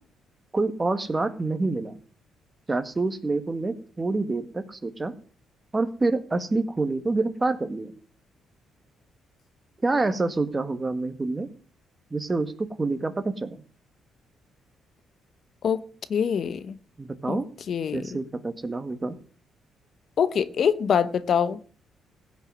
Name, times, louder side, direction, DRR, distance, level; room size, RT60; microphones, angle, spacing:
voice 1, 0.5-2.0 2.7-5.1 5.7-7.9 9.8-11.5 12.1-13.6 17.0-17.5 17.9-19.1, right 3 dB, 20° right, 1.8 m, -27 dB
voice 2, 16.1-16.8 17.2-17.4 17.7-18.2 20.2-21.6, left 7 dB, 55° left, 0.9 m, -24 dB
16.0 x 6.2 x 9.6 m
cardioid pair, 90°, 0 cm